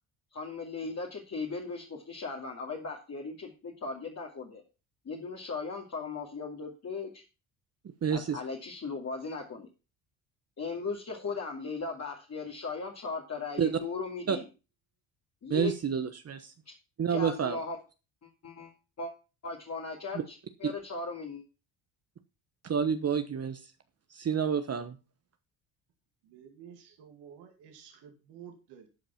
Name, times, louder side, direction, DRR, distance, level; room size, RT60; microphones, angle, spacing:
voice 1, 0.3-4.6 5.0-7.2 8.1-9.7 10.6-14.4 15.4-15.7 16.7-16.8 17.1-17.8 18.2-19.1 19.4-20.3 20.6-21.4, left 4 dB, 40° left, 2.6 m, -37 dB
voice 2, 7.8-8.4 13.6-13.8 14.3-14.4 15.5-16.5 17.0-17.6 20.1-20.2 20.6-20.7 22.6-23.6 24.1-25.0, right 7 dB, 35° right, 1.0 m, -29 dB
voice 3, 26.2-28.9, right 8 dB, 80° right, 2.4 m, -51 dB
11.5 x 5.3 x 5.7 m
supercardioid pair, 70°, 41 cm